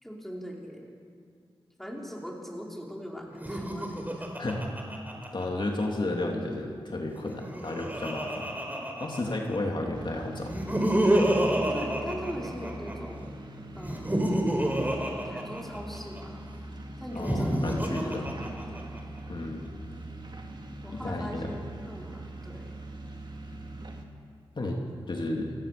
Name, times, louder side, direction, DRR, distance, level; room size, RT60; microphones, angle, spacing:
voice 1, 0.0-0.9 1.8-4.3 9.3-9.7 11.7-13.3 13.7-14.1 15.2-16.4 17.0-18.9 20.8-22.8, equal, 5° left, -2 dB, 5.1 m, -41 dB
Laughter, 3.3-5.8 7.2-9.6 10.4-12.9 13.8-16.2 17.1-19.0, right 1 dB, 20° right, 4.6 m, -28 dB
voice 2, 4.4-4.7 5.3-8.5 9.0-10.5 17.1-18.3 19.3-19.6 20.9-21.5 24.5-24.8 25.1-25.5, left 2 dB, 50° left, 0 dB, 3.0 m, -32 dB
sound 1, 9.9-24.1, right 1 dB, 50° right, 2.6 m, -42 dB
28.5 x 17.0 x 7.0 m, 2.2 s
cardioid pair, 60°, 10 cm